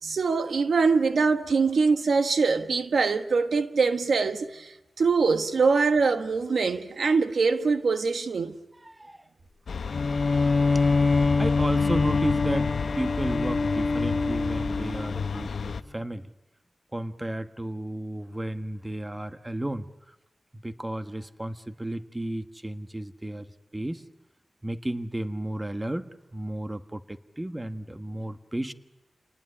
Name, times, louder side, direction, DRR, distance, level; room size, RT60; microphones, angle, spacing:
voice 1, 0.0-8.6, right 4 dB, 85° right, 1.4 m, -23 dB
voice 2, 8.8-9.3 11.4-16.3 16.9-20.1 20.5-23.5 23.7-24.0 24.6-28.7, right 1 dB, 20° right, 1.5 m, -33 dB
sound 1, 9.7-15.8, left 5 dB, 85° left, 1.0 m, -32 dB
Bowed string instrument, 9.9-15.4, left 3 dB, 55° left, 1.2 m, -25 dB
30.0 x 19.5 x 10.0 m
cardioid pair, 60°, 0 cm